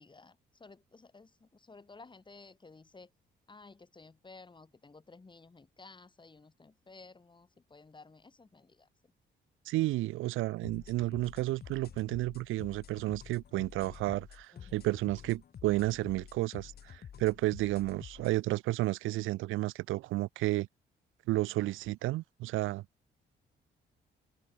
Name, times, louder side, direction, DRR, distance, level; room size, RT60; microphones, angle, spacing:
voice 1, 0.0-3.1 3.5-9.1 14.5-14.9, left 3 dB, 25° left, 2.9 m, -55 dB
voice 2, 9.7-20.7 21.3-22.8, right 18 dB, 85° right, 0.6 m, -32 dB
sound 1, 10.6-18.4, left 8 dB, 50° left, 1.7 m, -50 dB
open air
cardioid pair, 90°, 20 cm